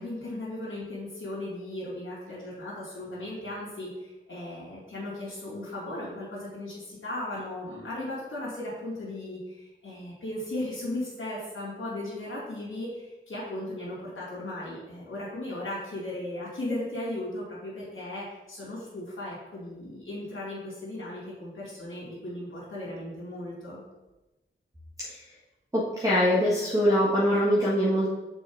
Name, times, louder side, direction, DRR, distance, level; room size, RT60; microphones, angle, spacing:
voice 1, 0.0-23.8, left 1 dB, 75° left, -8 dB, 2.5 m, -36 dB
voice 2, 25.7-28.1, equal, 15° right, -7 dB, 1.5 m, -23 dB
6.2 x 4.6 x 4.7 m, 1.1 s
wide cardioid pair, 70°, 21 cm